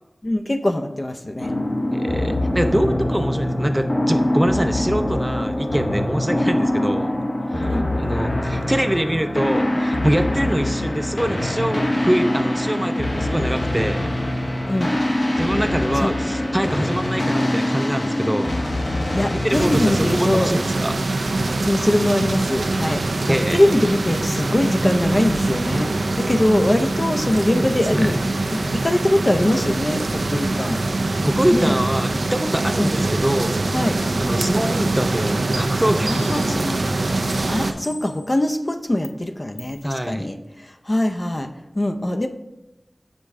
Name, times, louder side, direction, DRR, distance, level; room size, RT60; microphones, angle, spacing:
voice 1, 0.2-1.5 7.7-7.9 14.7-14.9 15.9-16.2 19.1-20.5 21.7-28.2 28.5-30.8 31.5-31.8 32.8-32.9 33.7-34.0 36.1-36.8 37.3-41.5 41.7-42.3, left 1 dB, 40° left, 5 dB, 0.5 m, -22 dB
sound 1, 1.4-20.1, left 1 dB, 60° left, 1.1 m, -23 dB
voice 2, 1.9-7.1 7.5-7.7 8.0-14.1 15.4-18.6 19.3-21.0 23.3-23.6 27.5-28.2 31.2-33.6 34.2-36.6 39.8-40.3, equal, 15° right, 8 dB, 0.4 m, -24 dB
sound 2, 19.5-37.7, right 2 dB, 90° right, 0.4 m, -23 dB
sound 3, 35.5-35.6 36.1-36.7 37.3-37.4 37.8-38.4 39.0-39.1 39.6-39.8, right 2 dB, 65° right, 1.0 m, -36 dB
6.5 x 5.1 x 3.5 m, 0.94 s
wide cardioid pair, 55°, 0 cm